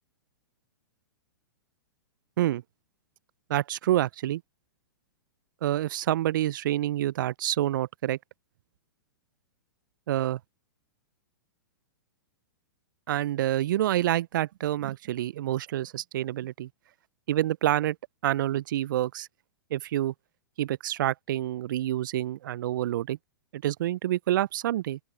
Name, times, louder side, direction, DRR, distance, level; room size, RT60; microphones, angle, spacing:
voice 1, 3.5-4.4 5.6-8.2 10.1-10.4 13.1-16.7 17.3-18.0 18.2-19.3 19.7-20.1 20.6-23.2 23.5-25.0, right 13 dB, 60° right, 0.6 m, -27 dB
open air
hypercardioid pair, 110°, 12 cm